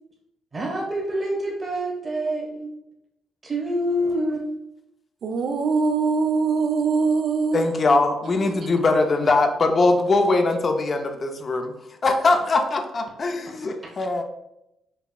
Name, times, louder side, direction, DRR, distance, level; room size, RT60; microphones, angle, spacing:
voice 1, 0.5-2.7 3.4-4.4, equal, 35° right, -3 dB, 1.0 m, -26 dB
voice 2, 5.2-7.7 8.4-8.8, right 4 dB, 60° right, 7 dB, 0.4 m, -23 dB
voice 3, 7.5-11.7 12.0-14.2, left 3 dB, 40° left, 5 dB, 0.4 m, -21 dB
5.3 x 2.3 x 2.3 m, 0.86 s
cardioid pair, 90°, 0 cm